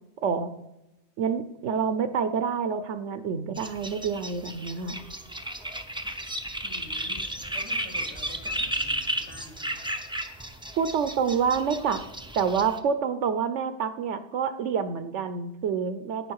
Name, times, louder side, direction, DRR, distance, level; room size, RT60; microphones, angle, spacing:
voice 1, 1.2-5.0 10.8-12.0 12.3-16.3, right 6 dB, 70° right, 11 dB, 1.0 m, -27 dB
sound 1, 3.6-12.8, right 1 dB, 5° right, 0.4 m, -34 dB
voice 2, 6.6-9.9, left 1 dB, 60° left, -2 dB, 3.1 m, -48 dB
11.0 x 9.2 x 4.7 m, 0.92 s
omnidirectional pair, 1.3 m